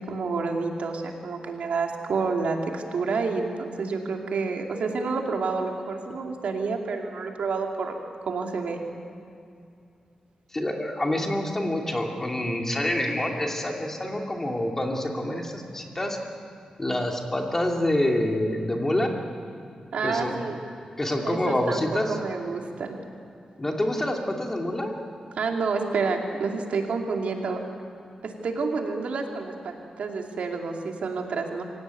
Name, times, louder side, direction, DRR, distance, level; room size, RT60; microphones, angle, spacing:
voice 1, 0.0-7.9 8.3-8.8 19.9-20.6 21.2-22.9 25.4-27.6 28.2-31.6, right 4 dB, 80° right, 2 dB, 2.6 m, -29 dB
voice 2, 10.5-16.2 16.8-19.1 20.0-20.3 21.0-22.2 23.6-25.0, left 1 dB, 20° left, 1 dB, 2.6 m, -27 dB
25.5 x 17.0 x 9.2 m, 2.4 s
wide cardioid pair, 140°, 2 cm